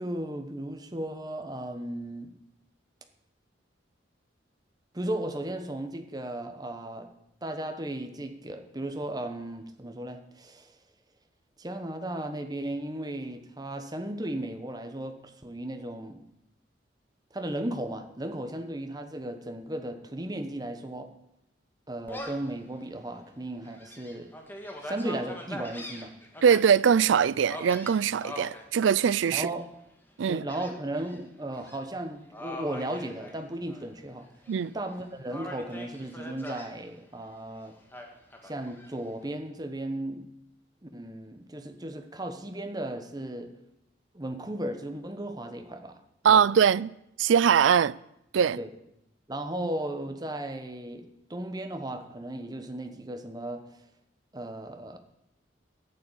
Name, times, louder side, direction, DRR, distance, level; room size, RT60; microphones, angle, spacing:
voice 1, 0.0-2.4 4.9-7.1 7.4-10.8 11.6-16.3 17.3-21.1 21.9-24.3 24.8-26.2 29.3-29.7 30.3-34.3 34.7-37.8 38.4-40.3 40.8-43.6 44.1-46.0 46.3-46.5 48.6-48.7 49.3-53.7 54.3-55.0, right 1 dB, 20° right, 1.1 m, -35 dB
Gull seagull, 22.1-22.5 23.0-23.1 23.6-26.6 27.5-28.6 29.2-29.6 30.5-31.2 31.5-31.8 32.3-33.9 34.2-34.9 35.3-36.7 37.9-38.9, left 1 dB, 10° left, 1.6 m, -42 dB
voice 2, 26.4-29.5 30.2-30.4 34.5-34.7 46.2-46.9 47.2-48.0 48.3-48.6, right 7 dB, 90° right, 0.4 m, -22 dB
10.5 x 8.9 x 8.4 m
head